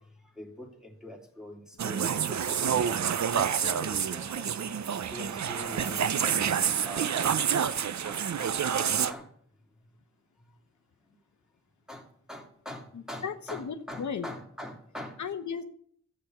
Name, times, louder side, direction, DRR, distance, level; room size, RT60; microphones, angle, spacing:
voice 1, 0.0-9.3 11.0-11.2 11.9-15.2, left 1 dB, ahead, 3.0 m, -44 dB
sound 1, 1.8-9.1, right 8 dB, 65° right, 0.7 m, -28 dB
voice 2, 13.2-14.3 15.2-15.6, left 6 dB, 70° left, 1.0 m, -35 dB
13.5 x 6.8 x 8.1 m
cardioid pair, 70°, 30 cm